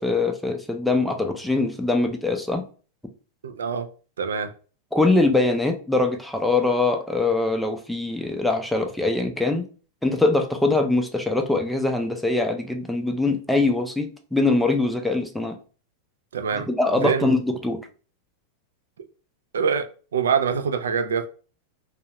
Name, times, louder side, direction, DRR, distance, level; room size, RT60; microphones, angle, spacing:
voice 1, 0.0-2.6 4.9-9.6 10.0-15.6 16.5-17.8, left 2 dB, 5° left, 0.4 m, -23 dB
voice 2, 3.4-3.9 4.2-4.5 16.3-17.4 19.0-19.1 19.5-21.3, right 6 dB, 90° right, 0.3 m, -25 dB
2.3 x 2.0 x 2.8 m
hypercardioid pair, 110°, 0 cm